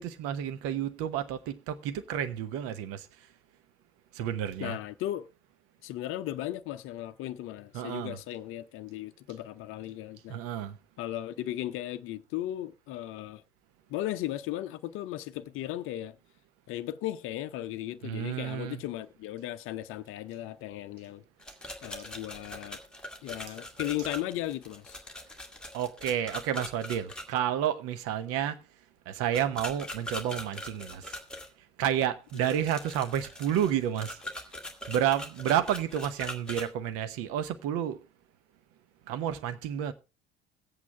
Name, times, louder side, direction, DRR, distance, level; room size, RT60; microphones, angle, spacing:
voice 1, 0.0-3.1 4.1-4.8 7.7-8.2 10.3-10.8 18.0-18.8 25.7-28.6 29.1-31.2 31.8-34.2 34.9-38.0 39.1-39.9, right 10 dB, 50° right, 0.9 m, -30 dB
voice 2, 4.6-5.3 5.8-10.4 11.0-13.4 13.9-16.2 16.7-21.2 21.8-22.8 23.2-25.0, left 13 dB, 45° left, 0.7 m, -36 dB
sound 1, 21.4-27.2 29.3-31.5 32.3-36.7, left 1 dB, 5° left, 1.8 m, -41 dB
22.0 x 8.3 x 2.3 m
figure-of-eight pair, 65°, 31 cm